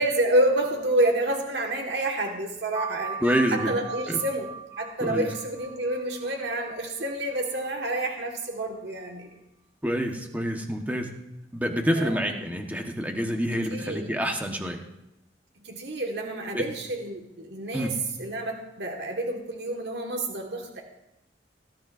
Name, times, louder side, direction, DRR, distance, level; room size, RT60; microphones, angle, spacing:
voice 1, 0.0-3.2 3.5-9.4 11.9-12.3 13.7-14.1 15.6-20.8, right 1 dB, 65° right, 1 dB, 1.6 m, -28 dB
sound 1, 2.7-7.9, right 6 dB, 30° right, 0.8 m, -39 dB
voice 2, 3.2-3.7 4.1-4.2 5.0-5.3 9.8-11.1 11.5-14.8 16.5-16.6 17.7-17.9, equal, 10° right, 3 dB, 1.2 m, -27 dB
18.5 x 12.5 x 2.6 m, 0.89 s
head